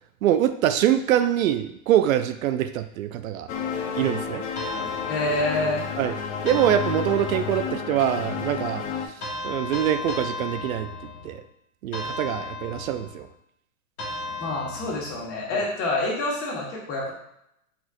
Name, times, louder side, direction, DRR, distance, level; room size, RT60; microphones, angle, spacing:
voice 1, 0.2-3.5 4.0-4.4 6.0-6.1 6.4-9.1 9.4-10.9 11.2-11.4 11.8-13.3, right 11 dB, 70° right, 10 dB, 0.5 m, -24 dB
sound 1, 3.5-9.1, left 6 dB, 55° left, 0.8 m, -31 dB
sound 2, 4.6-5.9 6.5-7.8 9.2-11.4 11.9-13.2 14.0-15.3, left 3 dB, 85° left, 1.6 m, -35 dB
voice 2, 5.1-5.9 14.4-17.1, left 2 dB, 30° left, -3 dB, 1.6 m, -27 dB
4.4 x 4.3 x 2.5 m, 0.76 s
hypercardioid pair, 135°, 43 cm